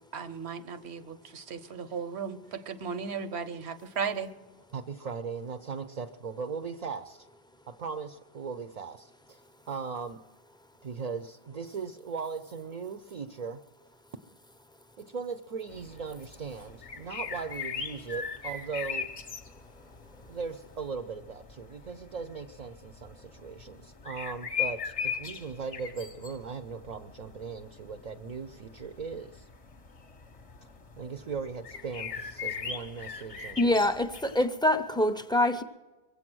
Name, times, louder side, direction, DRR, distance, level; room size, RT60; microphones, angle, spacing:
voice 1, 0.1-4.3, right 6 dB, 80° right, 11 dB, 1.1 m, -36 dB
voice 2, 4.7-7.3 7.7-10.3 10.8-13.6 15.0-19.1 20.3-29.5 31.0-33.7, right 5 dB, 45° right, 9 dB, 0.6 m, -38 dB
sound 1, 15.7-34.5, left 6 dB, 35° left, 0.8 m, -40 dB
voice 3, 33.6-35.6, left 1 dB, 5° left, 8 dB, 0.5 m, -25 dB
22.5 x 8.2 x 6.1 m, 1.2 s
omnidirectional pair, 1.1 m